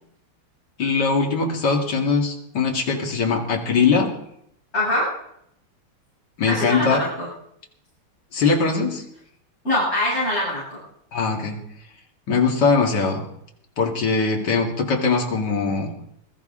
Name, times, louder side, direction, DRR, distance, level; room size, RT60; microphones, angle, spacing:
voice 1, 0.8-4.1 6.4-7.0 8.3-9.0 11.1-11.6 12.3-13.2 13.8-15.9, left 4 dB, 55° left, 1 dB, 2.7 m, -21 dB
voice 2, 4.7-5.1 6.4-7.3 9.6-10.8, left 1 dB, 30° left, -9 dB, 6.8 m, -23 dB
21.5 x 14.0 x 3.8 m, 0.73 s
omnidirectional pair, 2.3 m